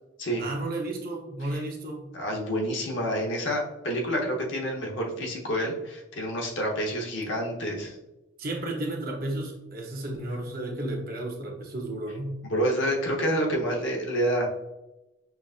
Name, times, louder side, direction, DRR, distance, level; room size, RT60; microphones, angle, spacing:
voice 1, 0.4-2.1 8.4-12.4, right 1 dB, 50° right, 0 dB, 0.8 m, -33 dB
voice 2, 2.1-7.9 12.4-14.5, equal, 65° left, -1 dB, 0.9 m, -28 dB
5.6 x 2.5 x 2.4 m, 0.96 s
head